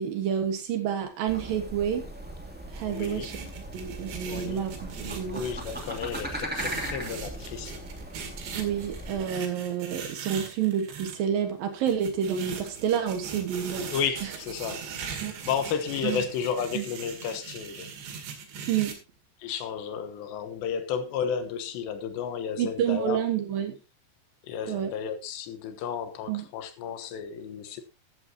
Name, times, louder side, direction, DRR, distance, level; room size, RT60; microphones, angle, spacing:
voice 1, 0.0-2.0 2.7-3.4 3.7-5.4 8.6-13.9 15.2-15.4 16.0-16.2 16.7-16.8 18.7-19.0 22.6-23.8 24.7-24.9 26.3-26.5, right 9 dB, 65° right, 2.8 m, -29 dB
sound 1, 1.3-9.3, equal, 5° right, 0.9 m, -38 dB
sound 2, 2.7-11.2 11.9-19.0, right 6 dB, 80° right, 4.4 m, -40 dB
voice 2, 2.9-3.3 4.3-4.6 5.3-7.8 13.9-14.9 15.5-17.9 19.4-23.2 24.4-27.8, left 7 dB, 80° left, 3.4 m, -32 dB
14.5 x 11.0 x 2.8 m
omnidirectional pair, 4.9 m